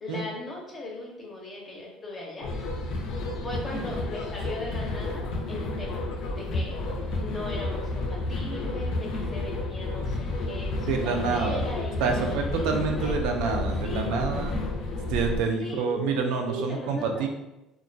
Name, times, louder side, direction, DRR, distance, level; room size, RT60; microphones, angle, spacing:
voice 1, 0.0-2.5 3.3-6.7 7.2-12.7 13.0-13.1 13.6-14.3 15.6-16.1 16.5-17.3, left 1 dB, 25° left, -2 dB, 0.5 m, -38 dB
sound 1, 2.4-15.4, left 2 dB, 75° left, 0.4 m, -31 dB
voice 2, 10.7-11.6 12.0-14.5 15.1-17.3, right 5 dB, 80° right, 3 dB, 0.4 m, -27 dB
2.3 x 2.1 x 2.6 m, 0.94 s
cardioid pair, 140°, 0 cm